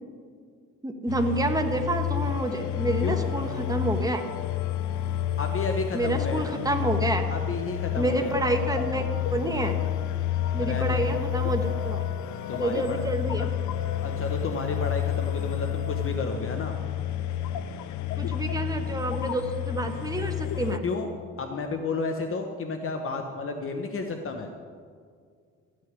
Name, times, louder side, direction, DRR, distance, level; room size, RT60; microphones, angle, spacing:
voice 1, 0.8-4.2 5.9-7.3 8.0-9.7 10.5-12.0 12.6-13.5 18.2-20.8, right 2 dB, 10° right, 5 dB, 1.5 m, -28 dB
sound 1, 1.1-20.8, left 11 dB, 70° left, 0.7 m, -30 dB
voice 2, 5.4-6.5 7.3-8.4 10.6-11.0 12.5-13.0 14.0-16.8 20.8-21.1 21.4-24.5, left 3 dB, 45° left, 4 dB, 1.1 m, -32 dB
14.0 x 6.5 x 9.6 m, 2.1 s
cardioid pair, 90°, 30 cm